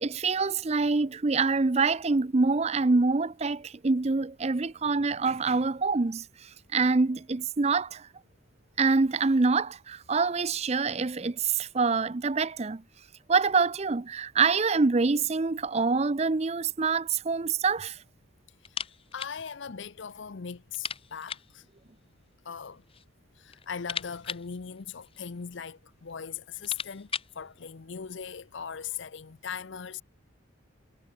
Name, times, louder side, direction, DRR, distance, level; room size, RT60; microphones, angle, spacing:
voice 1, 0.0-6.2 6.7-8.0 8.8-12.8 13.3-18.0, right 4 dB, 30° right, 0.5 m, -25 dB
sound 1, 18.6-19.4 19.7-19.8 20.1-20.2 20.7-21.6 22.5-23.1 23.4-25.4 26.1-26.2 26.5-27.4, left 7 dB, 25° left, 1.9 m, -39 dB
voice 2, 19.1-21.6 22.5-22.8 23.4-27.1 27.4-30.0, left 7 dB, 65° left, 0.6 m, -39 dB
head